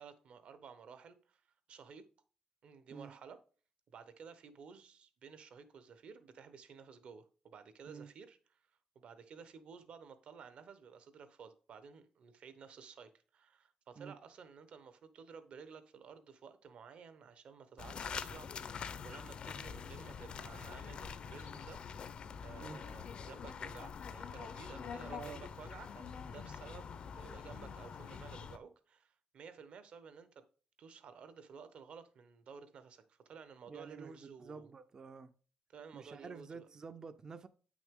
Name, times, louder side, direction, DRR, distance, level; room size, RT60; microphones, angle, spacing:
voice 1, 0.0-1.4 1.7-2.0 2.6-3.4 3.9-8.4 8.9-21.8 22.4-30.4 30.8-34.7 35.7-36.7, right 6 dB, 55° right, 0.8 m, -54 dB
sound 1, 17.8-28.6, left 6 dB, 45° left, 0.5 m, -45 dB
voice 2, 25.1-25.4 33.7-35.3 35.9-37.5, right 5 dB, 30° right, 0.4 m, -49 dB
8.8 x 6.1 x 3.6 m
wide cardioid pair, 165°, 2 cm